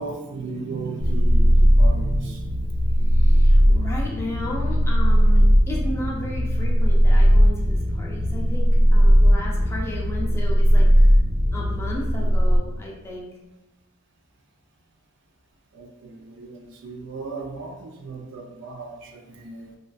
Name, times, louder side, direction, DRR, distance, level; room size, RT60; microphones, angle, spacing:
voice 1, 0.0-2.4 2.8-3.4 15.7-19.8, right 3 dB, 55° right, 2 dB, 0.3 m, -36 dB
sound 1, 1.0-12.6, equal, 75° left, 0.7 m, -18 dB
voice 2, 3.1-11.2 11.5-13.3, left 1 dB, 10° left, -4 dB, 0.4 m, -34 dB
2.4 x 2.4 x 2.2 m, 1.0 s
head